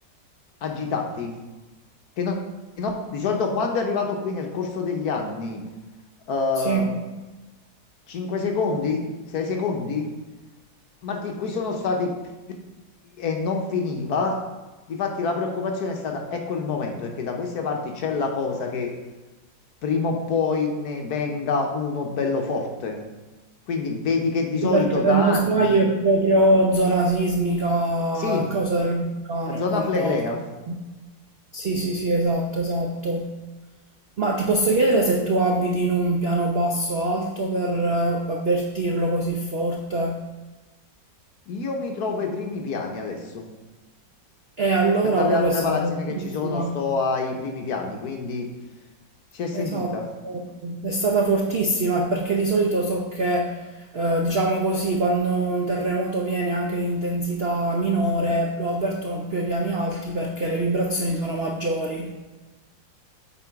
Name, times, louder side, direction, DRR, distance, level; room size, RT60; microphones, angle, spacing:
voice 1, 0.6-1.3 2.2-2.4 2.8-5.6 6.3-7.0 8.1-9.0 9.3-10.1 11.0-12.1 13.2-14.4 14.9-18.9 19.8-23.0 23.7-25.8 28.2-28.5 29.5-30.4 41.5-43.4 45.2-48.5 49.3-50.0, left 4 dB, 60° left, 2 dB, 1.3 m, -26 dB
voice 2, 6.6-6.9 24.6-30.2 30.7-30.8 31.5-33.4 34.2-40.2 44.6-46.8 49.5-50.0 50.2-62.1, right 2 dB, 85° right, 1 dB, 0.5 m, -23 dB
8.4 x 3.9 x 4.7 m, 1.2 s
omnidirectional pair, 2.0 m